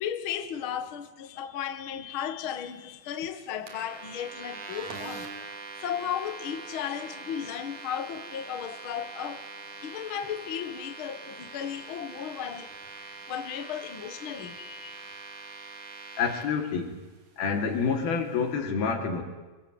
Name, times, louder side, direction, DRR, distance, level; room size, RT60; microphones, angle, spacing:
voice 1, 0.0-5.3 5.8-9.5 9.8-12.7 13.3-15.0, left 9 dB, 50° left, 1.7 m, -35 dB
sound 1, 3.7-16.4, right 4 dB, 55° right, 4.7 m, -43 dB
voice 2, 16.2-17.0 17.4-19.2, left 5 dB, 90° left, 5.1 m, -28 dB
25.5 x 23.5 x 9.6 m
omnidirectional pair, 4.2 m